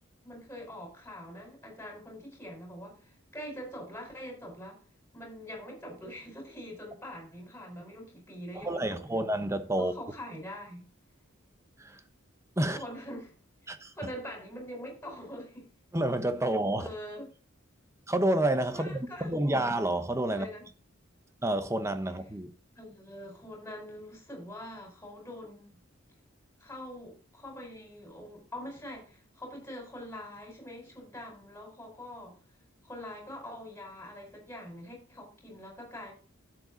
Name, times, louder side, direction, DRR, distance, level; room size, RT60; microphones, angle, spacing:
voice 1, 0.2-4.8 5.1-9.2 9.8-10.9 12.6-13.3 13.6-15.7 16.8-17.3 18.7-19.6 20.3-20.6 22.8-25.8 26.6-32.4 32.8-36.1, equal, 10° left, 4.7 m, -44 dB
voice 2, 8.5-9.9 11.8-12.0 12.6-12.8 13.7-13.9 15.9-16.9 18.1-20.5 21.4-22.5, right 1 dB, 15° right, 0.9 m, -29 dB
12.5 x 7.5 x 4.0 m
head